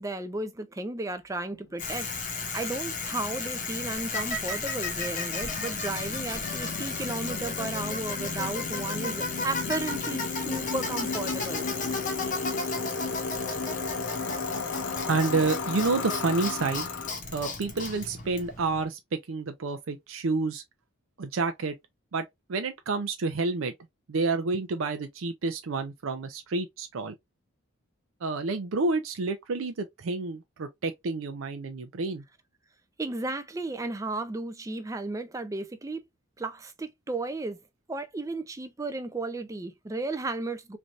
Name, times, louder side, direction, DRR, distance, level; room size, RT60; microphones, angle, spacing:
voice 1, 0.0-2.1 2.4-11.7 33.0-36.0 36.4-37.6 37.9-40.8, right 2 dB, 15° right, 0.4 m, -34 dB
sound 1, 1.6-1.7 1.9-17.1, left 4 dB, 75° left, 0.5 m, -36 dB
Bicycle, 1.8-18.8, left 4 dB, 35° left, 0.8 m, -34 dB
voice 2, 15.1-16.9 17.3-20.6 21.2-21.7 22.1-23.7 24.1-27.1 28.2-32.2, right 3 dB, 75° right, 0.5 m, -29 dB
3.2 x 2.6 x 2.4 m
head